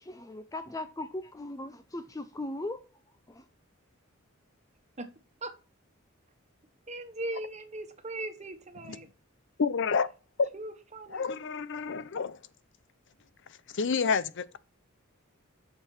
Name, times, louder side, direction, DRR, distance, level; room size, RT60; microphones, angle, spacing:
voice 1, 0.0-2.9 3.3-3.5, left 2 dB, 15° left, 0.5 m, -38 dB
voice 2, 6.9-9.1 10.5-11.2, right 2 dB, 35° right, 1.3 m, -39 dB
voice 3, 9.6-10.1 10.4-10.5 11.1-12.4 13.7-14.6, left 5 dB, 60° left, 0.6 m, -28 dB
11.0 x 6.8 x 4.4 m
head